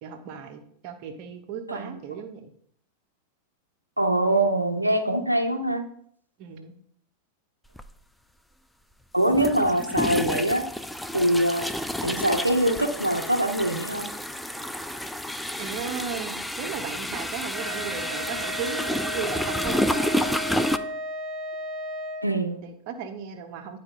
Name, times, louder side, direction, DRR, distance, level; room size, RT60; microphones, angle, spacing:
voice 1, 0.0-2.5 6.4-6.7 15.6-20.3 22.6-23.8, right 6 dB, 45° right, 5 dB, 1.0 m, -36 dB
voice 2, 4.0-5.8 9.1-10.6 11.1-11.7 12.0-14.1 22.2-22.6, right 1 dB, 90° right, 4 dB, 0.8 m, -23 dB
sound 1, 7.8-7.9 9.2-20.8, left 1 dB, ahead, 0.4 m, -30 dB
Wind instrument woodwind instrument, 17.5-22.3, equal, 20° right, 1.2 m, -34 dB
10.5 x 4.3 x 3.8 m, 0.64 s
figure-of-eight pair, 90°, 0 cm